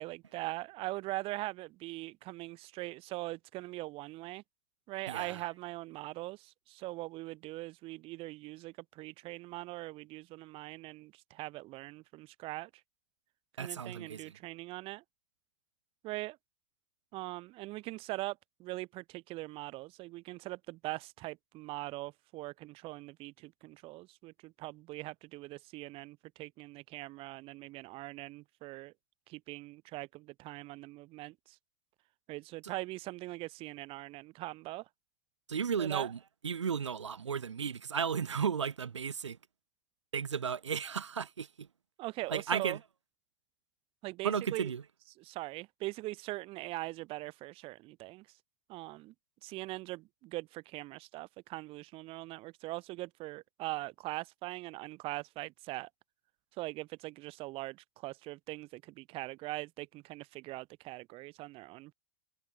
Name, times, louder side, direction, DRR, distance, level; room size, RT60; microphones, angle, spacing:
voice 1, 0.0-4.4 4.9-12.7 13.6-15.0 16.0-16.4 17.1-28.9 29.3-31.6 32.3-34.9 35.8-36.1 42.0-42.8 44.0-44.7 45.2-48.3 48.7-49.1 49.4-55.9 56.6-61.9, right 20 dB, 40° right, 5.5 m, -41 dB
voice 2, 5.1-5.5 13.6-14.4 35.5-36.2 36.4-39.4 40.1-41.7 42.3-42.8 44.2-44.8, right 7 dB, 80° right, 3.8 m, -34 dB
hypercardioid pair, 110°, 15 cm